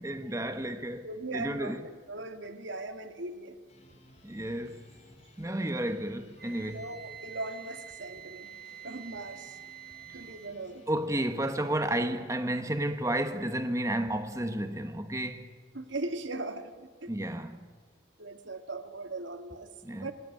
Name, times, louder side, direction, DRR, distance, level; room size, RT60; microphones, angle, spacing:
voice 1, 0.0-1.1 1.3-1.8 4.2-4.8 5.4-6.8 10.9-15.5 17.1-17.7 19.8-20.1, right 1 dB, 15° right, 1.2 m, -32 dB
voice 2, 1.0-1.8 2.1-3.6 6.6-8.5 8.8-9.6 10.1-10.9 15.7-17.3 18.2-20.1, right 2 dB, 90° right, 2.0 m, -39 dB
sound 1, 3.7-12.0, left 1 dB, 35° left, 5.1 m, -58 dB
Wind instrument woodwind instrument, 6.4-10.6, right 9 dB, 55° right, 4.4 m, -47 dB
26.5 x 20.0 x 9.4 m
head